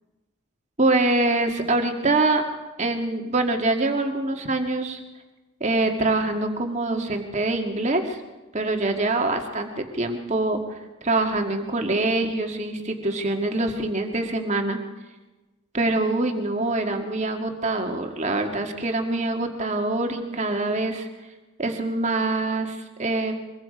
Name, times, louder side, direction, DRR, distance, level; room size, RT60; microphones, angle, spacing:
voice 1, 0.8-2.4 2.8-5.0 5.6-8.2 8.5-10.6 11.0-14.8 15.7-21.1 21.6-23.4, right 2 dB, 30° right, 4 dB, 1.9 m, -24 dB
23.5 x 22.5 x 5.2 m, 1.2 s
head